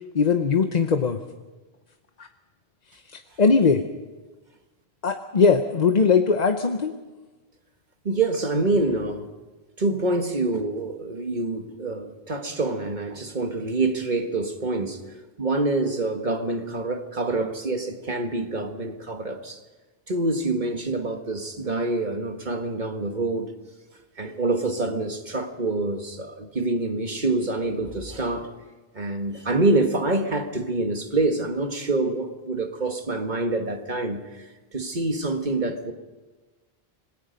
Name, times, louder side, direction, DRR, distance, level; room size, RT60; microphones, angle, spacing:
voice 1, 0.1-1.2 2.2-2.3 2.9-3.8 5.0-6.9, left 5 dB, 45° left, 6 dB, 1.0 m, -20 dB
voice 2, 8.1-9.3 9.8-15.0 15.4-19.6 20.1-23.5 24.2-28.5 28.9-34.4 34.7-35.9, right 2 dB, 45° right, 6 dB, 1.8 m, -26 dB
26.0 x 19.5 x 5.3 m, 1.2 s
omnidirectional pair, 1.1 m